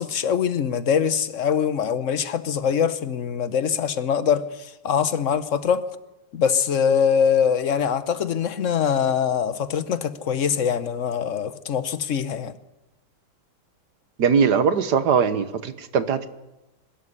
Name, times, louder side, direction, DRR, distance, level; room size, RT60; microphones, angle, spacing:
voice 1, 0.0-5.8 6.3-12.6, left 7 dB, 50° left, 1.1 m, -23 dB
voice 2, 14.2-16.3, right 6 dB, 70° right, 1.7 m, -20 dB
22.0 x 13.0 x 9.6 m
omnidirectional pair, 1.9 m